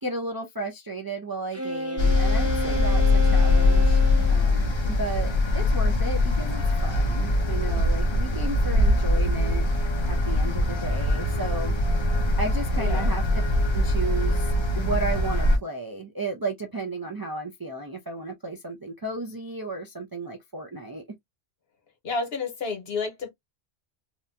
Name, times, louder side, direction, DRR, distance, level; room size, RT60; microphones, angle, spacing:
voice 1, 0.0-9.7 10.1-11.7 12.4-13.2 13.7-21.0, right 2 dB, 35° right, 0.4 m, -34 dB
Wind instrument woodwind instrument, 1.5-4.4, right 1 dB, 15° right, 0.8 m, -31 dB
sound 1, 2.0-15.6, left 2 dB, 35° left, 0.5 m, -22 dB
voice 2, 12.8-13.1 22.0-23.3, left 4 dB, 70° left, 1.1 m, -30 dB
2.9 x 2.2 x 2.5 m
omnidirectional pair, 1.1 m